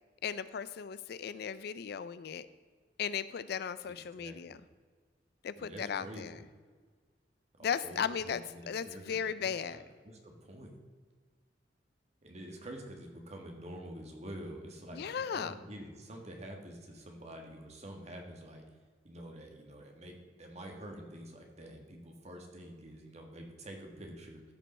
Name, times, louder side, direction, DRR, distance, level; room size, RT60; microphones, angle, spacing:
voice 1, 0.2-2.5 3.0-4.6 5.4-6.4 7.6-9.8 14.9-15.6, left 7 dB, 60° left, 15 dB, 0.4 m, -36 dB
voice 2, 3.8-4.7 5.6-6.4 7.6-10.8 12.2-18.6 19.0-24.5, right 1 dB, 40° right, 2 dB, 1.6 m, -47 dB
14.5 x 5.3 x 4.3 m, 1.5 s
head